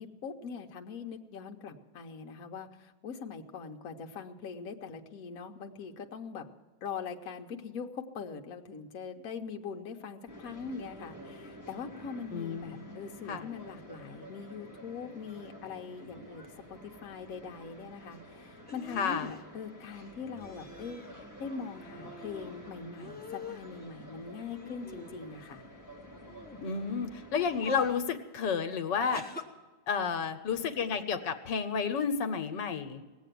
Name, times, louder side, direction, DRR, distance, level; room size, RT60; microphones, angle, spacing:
voice 1, 0.0-6.4 6.8-21.0 21.4-25.6, left 5 dB, 60° left, 3 dB, 1.3 m, -42 dB
sound 1, 10.3-28.0, equal, 10° right, 1.8 m, -50 dB
voice 2, 12.3-13.0 13.3-13.5 18.9-19.3 26.6-29.2 29.9-33.0, left 6 dB, 85° left, 8 dB, 1.6 m, -31 dB
sound 2, 18.7-19.4 20.4-21.1 21.5-22.6 22.9-23.7 24.4-25.5 26.2-26.6 27.3-28.0 29.1-29.4, left 2 dB, 5° left, 0.9 m, -45 dB
18.5 x 7.9 x 9.2 m, 1.3 s
omnidirectional pair, 1.9 m